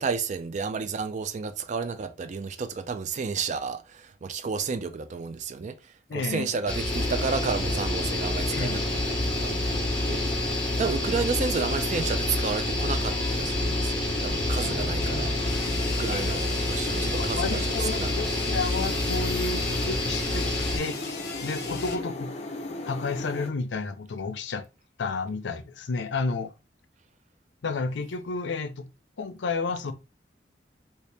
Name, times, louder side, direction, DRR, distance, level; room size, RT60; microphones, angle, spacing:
voice 1, 0.0-9.8 10.1-10.2 10.8-18.3, right 5 dB, 40° right, 0.4 m, -32 dB
voice 2, 6.1-6.5 8.5-9.0 16.1-16.5 16.9-20.5 20.7-21.0 21.4-22.3 22.9-24.7 25.0-26.5 27.6-28.9 29.2-29.9, left 4 dB, 80° left, 0.5 m, -31 dB
sound 1, 6.7-20.8, left 1 dB, 5° left, 1.0 m, -28 dB
sound 2, 6.9-23.5, left 2 dB, 40° left, 0.8 m, -36 dB
sound 3, 14.6-22.0, left 3 dB, 65° left, 0.9 m, -38 dB
2.9 x 2.8 x 3.3 m
head